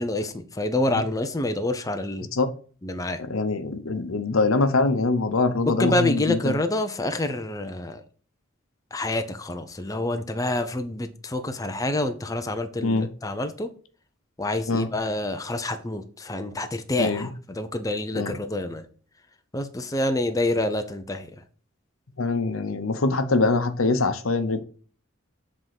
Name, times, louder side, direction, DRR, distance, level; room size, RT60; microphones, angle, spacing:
voice 1, 0.0-2.3 2.8-3.2 5.7-8.0 8.9-13.7 14.4-18.9 19.5-21.3, left 1 dB, 15° left, 0.7 m, -27 dB
voice 2, 3.3-6.5 12.8-13.1 14.7-14.9 17.0-17.3 18.1-18.3 22.2-24.6, left 3 dB, 85° left, 0.9 m, -23 dB
7.6 x 3.7 x 5.9 m
head